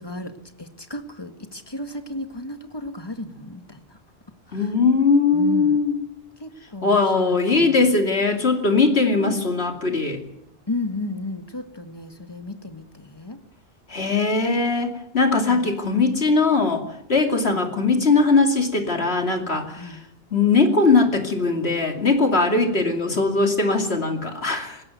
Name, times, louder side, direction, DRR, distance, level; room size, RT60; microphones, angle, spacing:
voice 1, 0.0-4.0 4.5-4.7 5.3-5.8 6.4-7.9 9.1-9.4 10.7-13.4 15.4-15.7 17.3-17.6 19.8-20.1 22.8-23.0, left 2 dB, 20° left, 7 dB, 1.9 m, -34 dB
voice 2, 4.5-6.0 6.8-10.2 13.9-16.8 17.1-20.0 20.3-24.8, left 3 dB, 65° left, 4 dB, 2.9 m, -20 dB
20.0 x 17.0 x 9.5 m, 0.80 s
omnidirectional pair, 1.1 m